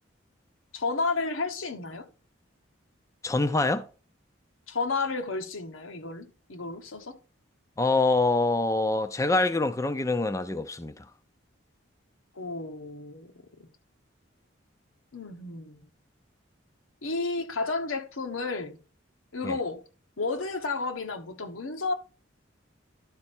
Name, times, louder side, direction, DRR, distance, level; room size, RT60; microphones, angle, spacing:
voice 1, 0.7-2.1 4.7-7.2 12.3-13.3 13.6-13.7 15.1-15.9 17.0-18.8 19.3-19.8 20.2-21.9, left 3 dB, 85° left, 1.1 m, -32 dB
voice 2, 3.2-3.8 7.8-11.0 19.4-19.6, left 2 dB, 15° left, 0.4 m, -25 dB
11.5 x 4.3 x 4.3 m
head